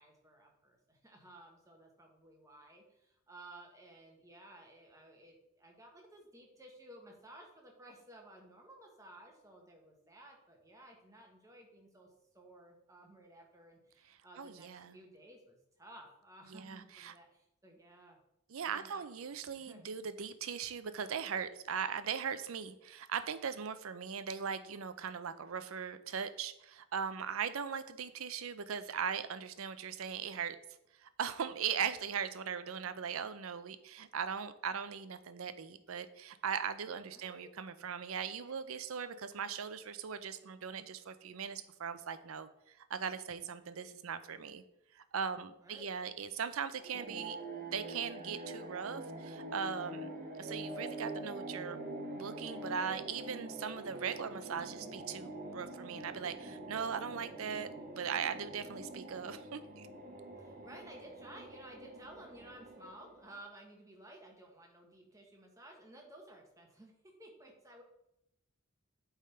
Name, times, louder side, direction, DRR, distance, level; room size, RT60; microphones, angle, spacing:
voice 1, 0.0-18.2 18.6-20.1 37.1-37.5 38.4-38.5 39.3-39.5 45.6-45.9 60.4-67.8, right 1 dB, 15° right, 1 dB, 1.2 m, -56 dB
voice 2, 14.1-15.0 16.5-17.1 18.5-30.6 31.0-44.6 44.9-47.4 47.7-50.1 50.3-51.8 52.1-57.7 57.9-59.9, right 7 dB, 75° right, 12 dB, 0.5 m, -39 dB
sound 1, 46.8-63.4, right 1 dB, 40° right, 0.9 m, -45 dB
8.4 x 3.6 x 4.3 m, 0.82 s
head